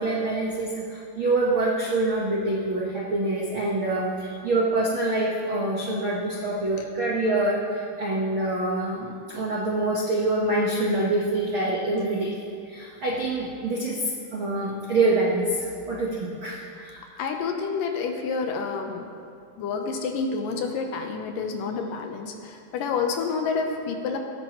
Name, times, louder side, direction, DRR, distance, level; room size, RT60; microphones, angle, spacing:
voice 1, 0.0-12.3 12.7-17.0, right 2 dB, 80° right, -4 dB, 1.1 m, -26 dB
voice 2, 17.2-19.1 19.6-24.2, left 5 dB, 75° left, 3 dB, 2.3 m, -29 dB
16.5 x 13.5 x 3.0 m, 2.4 s
omnidirectional pair, 4.3 m